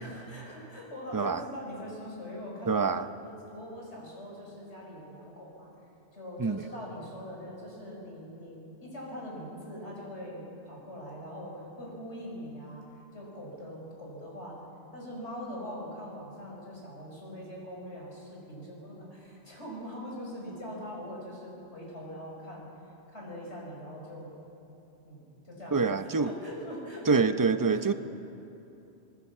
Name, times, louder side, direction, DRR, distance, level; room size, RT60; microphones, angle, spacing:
voice 1, 0.0-5.7 6.1-12.8 13.1-14.6 14.9-22.7 23.1-24.3 25.0-27.1 27.4-28.0, equal, 70° left, -2 dB, 5.7 m, -42 dB
voice 2, 2.7-3.0 6.4-6.6 25.7-26.3 27.1-27.9, right 4 dB, 25° right, 10 dB, 0.5 m, -25 dB
26.0 x 19.0 x 7.3 m, 2.8 s
omnidirectional pair, 1.2 m